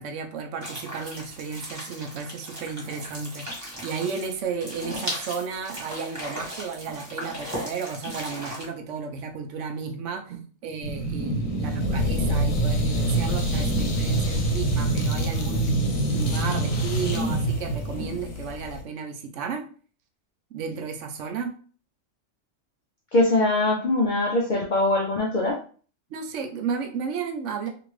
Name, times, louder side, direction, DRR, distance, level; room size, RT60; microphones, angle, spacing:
voice 1, 0.0-15.7 16.1-19.6 20.5-21.5 26.1-27.7, right 5 dB, 75° right, 5 dB, 0.9 m, -33 dB
sound 1, 0.6-8.6, equal, 15° right, 1.3 m, -37 dB
sound 2, 10.8-18.8, right 1 dB, 85° left, 1.2 m, -25 dB
voice 2, 23.1-25.6, left 2 dB, 60° left, -1 dB, 0.5 m, -22 dB
2.8 x 2.6 x 3.1 m, 0.41 s
omnidirectional pair, 1.3 m